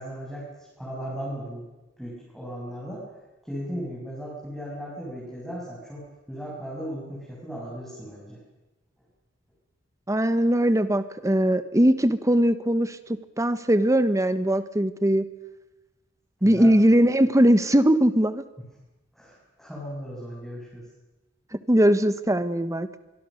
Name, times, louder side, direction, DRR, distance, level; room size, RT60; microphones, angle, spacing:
voice 1, 0.0-1.7 2.0-3.0 3.4-8.4 16.4-16.7 19.1-20.8, equal, ahead, -6 dB, 7.4 m, -36 dB
voice 2, 10.1-13.0 13.4-15.3 16.4-18.4 21.7-22.9, right 1 dB, 15° right, 12 dB, 1.2 m, -20 dB
24.5 x 22.0 x 6.5 m, 1.1 s
head